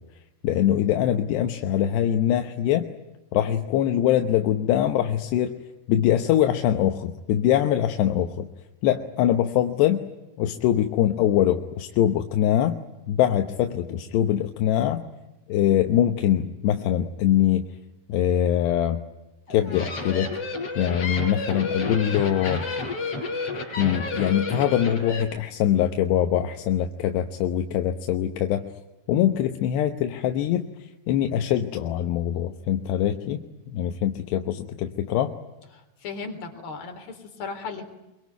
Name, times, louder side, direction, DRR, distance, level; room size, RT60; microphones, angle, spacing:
voice 1, 0.4-2.9 3.3-5.6 5.9-8.5 8.8-10.0 10.4-12.8 13.1-15.0 15.5-17.7 18.1-19.0 19.5-20.3 20.8-22.6 23.8-28.6 29.1-30.7 31.1-33.4 33.7-35.3, left 11 dB, 85° left, 6 dB, 3.2 m, -23 dB
sound 1, 19.5-25.2, left 3 dB, 35° left, 5.0 m, -31 dB
voice 2, 35.7-37.8, left 4 dB, 60° left, 4 dB, 5.4 m, -36 dB
25.5 x 23.5 x 9.4 m, 0.98 s
omnidirectional pair, 4.8 m